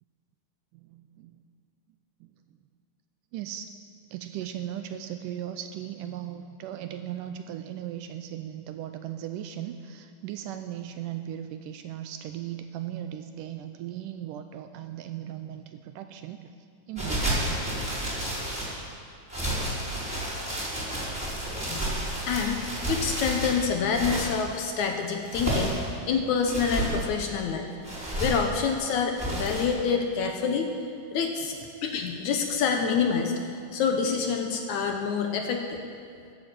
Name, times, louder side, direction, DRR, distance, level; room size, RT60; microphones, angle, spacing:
voice 1, 0.7-1.4 2.2-2.3 3.3-3.8 4.1-16.5 16.9-17.6 19.8-19.9, right 11 dB, 80° right, 8 dB, 2.0 m, -37 dB
sound 1, 17.0-18.8 19.3-24.4 25.1-25.9 26.4-27.0 27.8-28.5 29.2-29.7, right 1 dB, 5° left, 4.4 m, -30 dB
voice 2, 22.3-25.8 26.1-27.7 28.2-30.7 31.1-31.5 31.8-35.8, left 6 dB, 70° left, 4 dB, 2.0 m, -27 dB
13.0 x 12.0 x 7.7 m, 2.3 s
omnidirectional pair, 4.1 m